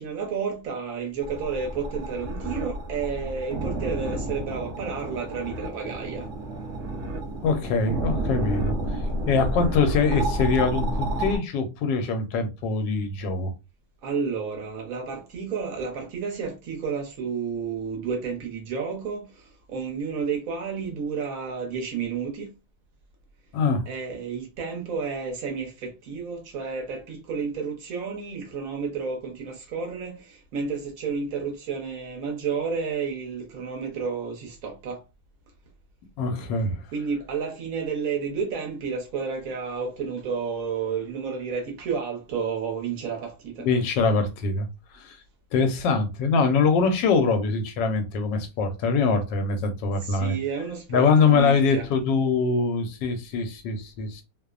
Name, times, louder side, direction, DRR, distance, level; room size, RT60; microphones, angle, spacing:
voice 1, 0.0-6.3 14.0-19.3 19.7-22.5 23.9-35.0 36.9-43.7 50.0-51.9, right 5 dB, 60° right, 1.1 m, -31 dB
sound 1, 1.2-11.4, right 1 dB, 75° right, 0.6 m, -30 dB
voice 2, 7.4-8.8 9.3-13.5 23.5-23.8 36.2-36.8 43.6-44.7 45.0-45.2 45.5-50.3 50.9-54.2, left 4 dB, 80° left, 1.3 m, -23 dB
3.0 x 2.0 x 2.3 m
omnidirectional pair, 1.9 m